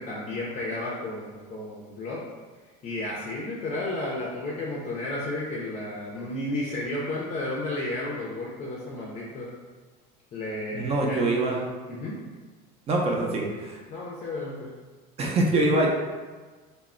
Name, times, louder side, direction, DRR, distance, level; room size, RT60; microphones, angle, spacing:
voice 1, 0.0-2.2 2.8-9.5 10.3-11.5 11.8-12.2 13.9-14.7, left 2 dB, 35° left, -4 dB, 0.5 m, -32 dB
voice 2, 10.7-11.7 12.9-13.8 15.2-15.9, right 2 dB, 30° right, -1 dB, 0.5 m, -24 dB
2.1 x 2.0 x 3.6 m, 1.4 s
cardioid pair, 130°, 20 cm